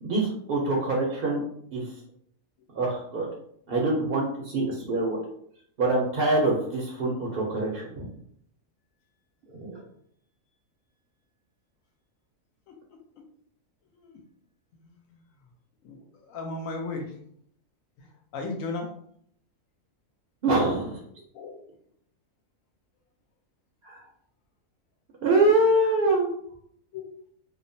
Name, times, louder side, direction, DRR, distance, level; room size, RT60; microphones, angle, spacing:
voice 1, 0.0-1.4 1.7-1.9 2.7-3.3 3.7-5.2 5.8-8.1 9.5-9.8 20.4-21.0 23.8-24.0 25.2-26.3, right 2 dB, 60° right, -2 dB, 0.6 m, -25 dB
voice 2, 14.8-15.2 15.8-17.1 18.0-18.1 18.3-18.9 21.3-21.5 26.9-27.1, left 3 dB, 80° left, 2 dB, 1.0 m, -36 dB
2.9 x 2.0 x 2.6 m, 0.66 s
omnidirectional pair, 1.4 m